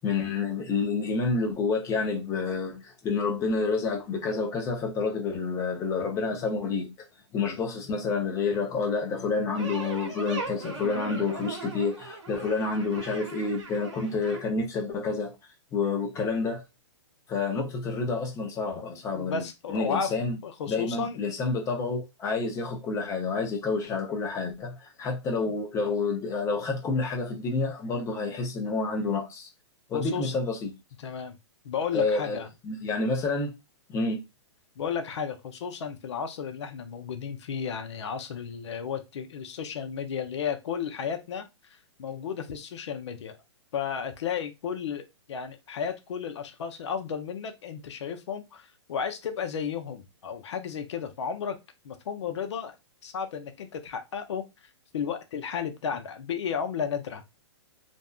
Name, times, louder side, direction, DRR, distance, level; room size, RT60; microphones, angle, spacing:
voice 1, 0.0-7.0 7.3-15.3 15.7-16.6 17.3-19.4 19.7-20.4 20.7-29.5 29.9-30.8 31.9-33.5 33.9-34.2, left 4 dB, 20° left, 0.6 m, -29 dB
sound 1, 9.5-14.4, right 3 dB, 80° right, 0.9 m, -39 dB
voice 2, 19.1-20.1 20.4-21.2 29.9-30.3 31.0-31.4 31.6-32.5 34.8-41.5 42.0-43.3 43.7-51.6 51.8-52.8 53.0-54.4 54.9-57.2, left 7 dB, 70° left, 0.6 m, -33 dB
2.6 x 2.2 x 2.3 m
hypercardioid pair, 135°, 15 cm